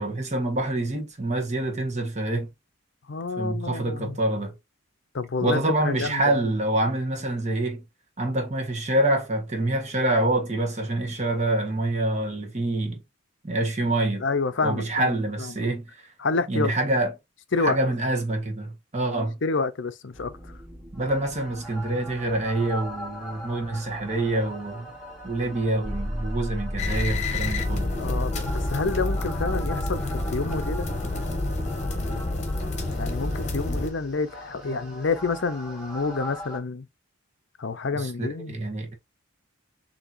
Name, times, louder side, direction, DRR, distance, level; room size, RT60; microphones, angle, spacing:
voice 1, 0.0-2.5 3.4-4.5 5.4-7.8 8.2-13.0 13.4-14.2 14.6-16.1 16.5-17.1 17.6-19.4 20.9-24.9 25.2-27.9 33.6-33.9 37.9-38.9, right 1 dB, 35° right, 1.2 m, -26 dB
voice 2, 3.1-4.2 5.1-6.3 14.2-15.1 16.2-16.7 17.5-17.8 19.4-20.3 28.0-30.9 33.0-36.8 37.6-38.6, left 4 dB, 60° left, 0.6 m, -28 dB
sound 1, 20.1-36.6, equal, 5° right, 2.5 m, -36 dB
sound 2, 26.8-33.9, left 2 dB, 35° left, 1.1 m, -29 dB
6.8 x 2.8 x 2.6 m
head